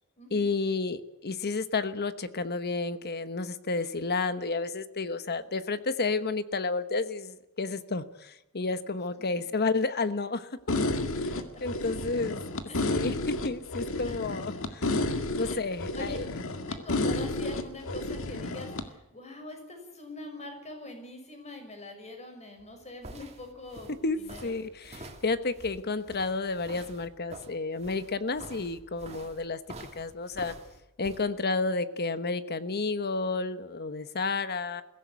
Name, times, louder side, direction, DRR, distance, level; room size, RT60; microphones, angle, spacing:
voice 1, 0.3-10.7 11.6-12.4 12.8-15.0 15.4-16.2 24.0-29.6 29.9-30.5 31.0-34.8, left 3 dB, 50° left, 12 dB, 1.2 m, -31 dB
sound 1, 10.7-18.8, left 2 dB, 65° left, 2.0 m, -31 dB
voice 2, 12.7-13.1 14.0-14.4 15.4-16.2 16.5-24.5, left 2 dB, 30° left, 5 dB, 5.9 m, -44 dB
sound 2, 22.6-31.2, right 2 dB, 30° right, 2.8 m, -47 dB
21.5 x 16.5 x 8.2 m, 0.94 s
head